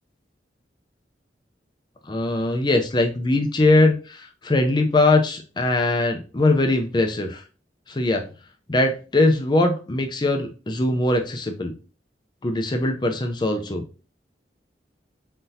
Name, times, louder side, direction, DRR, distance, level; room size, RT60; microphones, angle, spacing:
voice 1, 2.1-7.4 7.9-8.2 8.7-11.7 12.4-13.8, left 2 dB, 25° left, 5 dB, 0.5 m, -21 dB
4.4 x 4.0 x 2.7 m, 0.35 s
head